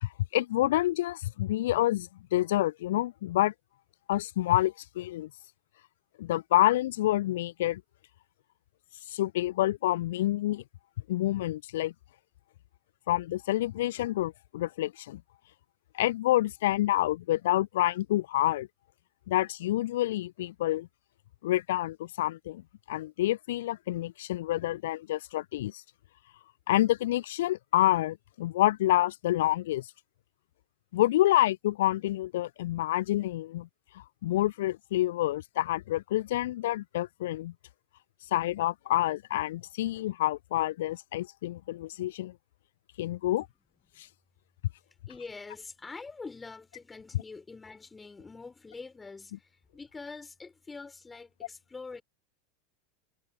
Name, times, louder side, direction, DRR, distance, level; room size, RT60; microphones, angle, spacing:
voice 1, 0.0-3.5 4.1-5.3 6.2-7.8 9.1-10.6 11.1-11.9 13.1-15.2 15.9-18.7 19.3-20.9 21.4-25.8 26.7-29.9 30.9-33.7 33.9-37.5 38.3-42.3 43.0-43.5 44.0-44.1 47.1-47.2, left 15 dB, 60° left, 0.5 m, -28 dB
voice 2, 45.1-52.0, left 4 dB, 15° left, 4.1 m, -45 dB
figure-of-eight pair, 85°, 0 cm